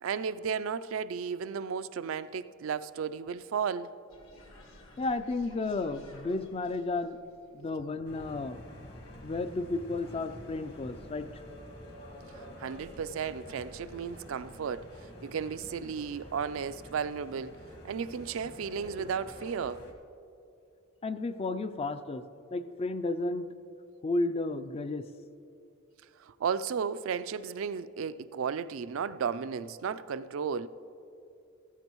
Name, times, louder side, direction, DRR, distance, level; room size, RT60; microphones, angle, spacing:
voice 1, 0.0-3.9 12.6-14.9 15.2-17.6 17.8-19.9 26.2-30.7, right 6 dB, 70° right, 0.4 m, -34 dB
sound 1, 4.1-9.6, left 1 dB, 75° left, 2.1 m, -57 dB
voice 2, 5.0-7.2 7.5-8.6 9.2-11.4 21.0-22.2 22.5-23.5 24.0-25.1, left 2 dB, 30° left, 0.4 m, -32 dB
sound 2, 8.0-19.9, left 1 dB, 50° left, 1.5 m, -48 dB
15.0 x 14.5 x 3.0 m
head